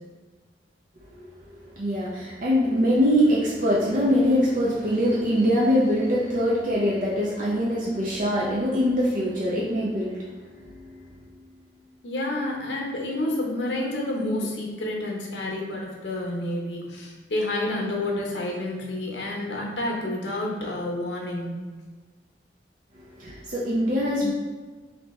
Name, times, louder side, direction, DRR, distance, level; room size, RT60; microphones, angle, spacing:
voice 1, 1.7-10.2 23.2-24.3, equal, 50° right, -5 dB, 0.5 m, -23 dB
voice 2, 12.0-21.5, left 1 dB, 85° left, -1 dB, 0.8 m, -29 dB
3.3 x 2.8 x 4.1 m, 1.4 s
head